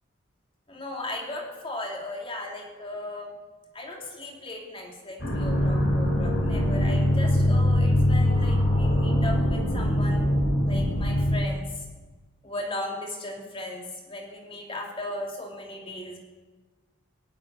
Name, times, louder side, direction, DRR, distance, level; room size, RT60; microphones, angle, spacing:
voice 1, 0.7-3.3 3.7-10.2 10.7-11.8 12.4-16.2, left 2 dB, 25° left, 0 dB, 2.7 m, -37 dB
sound 1, 5.2-11.4, left 1 dB, 55° left, 4.8 m, -22 dB
17.5 x 7.9 x 9.3 m, 1.3 s
head